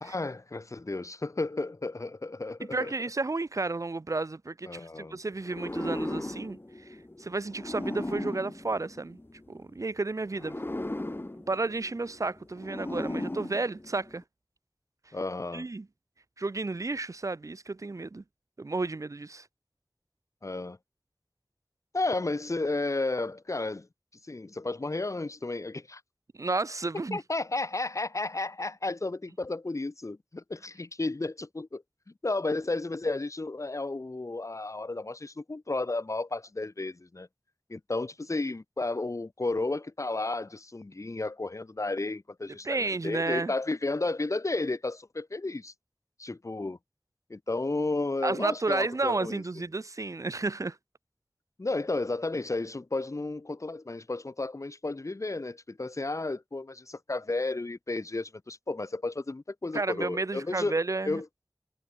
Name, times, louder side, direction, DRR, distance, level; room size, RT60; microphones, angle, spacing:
voice 1, 0.0-2.9 4.7-5.2 15.1-15.7 20.4-20.8 21.9-23.9 24.3-26.0 27.1-31.8 32.2-37.3 37.7-45.7 46.2-46.8 47.3-49.4 51.6-60.7 61.0-61.3, left 2 dB, 75° left, 2.0 m, -32 dB
voice 2, 2.6-6.9 7.2-9.2 9.5-10.6 11.5-14.2 15.5-15.9 16.4-18.2 18.6-19.5 26.3-27.2 42.6-43.5 48.2-50.8 59.7-61.2, right 3 dB, 85° right, 1.2 m, -32 dB
sound 1, 5.4-9.6 10.3-14.2, left 1 dB, 45° left, 4.9 m, -37 dB
wide cardioid pair, 40°, 5 cm